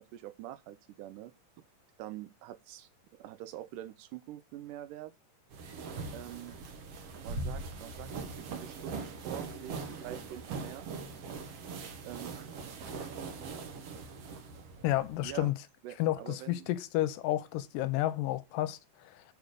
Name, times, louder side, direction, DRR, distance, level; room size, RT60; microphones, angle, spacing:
voice 1, 0.0-1.3 2.0-5.1 6.1-6.6 7.2-10.9 12.1-12.5 15.2-15.5 15.8-16.7, right 13 dB, 80° right, 2.0 m, -45 dB
sound 1, 5.5-15.5, right 4 dB, 60° right, 1.8 m, -41 dB
voice 2, 14.8-15.5 16.0-19.2, left 15 dB, 85° left, 2.2 m, -31 dB
6.6 x 5.2 x 6.3 m
omnidirectional pair, 3.9 m